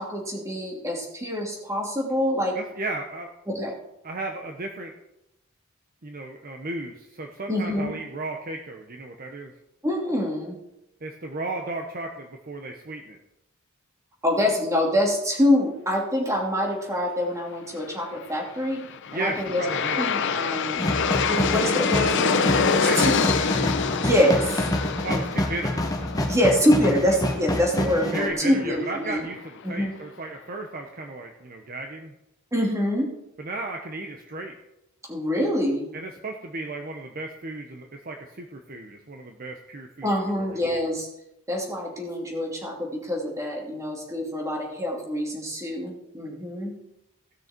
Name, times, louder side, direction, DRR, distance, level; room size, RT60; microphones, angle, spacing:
voice 1, 0.0-2.6 3.5-3.7 7.5-8.0 9.8-10.6 14.2-18.8 19.1-19.6 20.0-20.9 21.3-23.3 24.0-24.6 26.2-29.3 29.6-29.9 32.5-33.1 35.1-35.9 40.0-41.1 41.5-46.8, left 1 dB, 15° right, -1 dB, 2.7 m, -25 dB
voice 2, 2.5-3.3 4.0-4.9 6.0-9.5 11.0-13.2 19.1-20.1 22.8-23.2 25.0-25.8 28.1-32.1 33.4-34.5 35.9-40.1 40.4-40.6, right 2 dB, 45° right, 3 dB, 0.9 m, -34 dB
Aircraft, 18.6-29.7, left 6 dB, 60° left, 0.7 m, -27 dB
sound 1, 20.8-28.3, left 1 dB, 15° left, 1.2 m, -27 dB
16.5 x 6.4 x 4.5 m, 0.84 s
head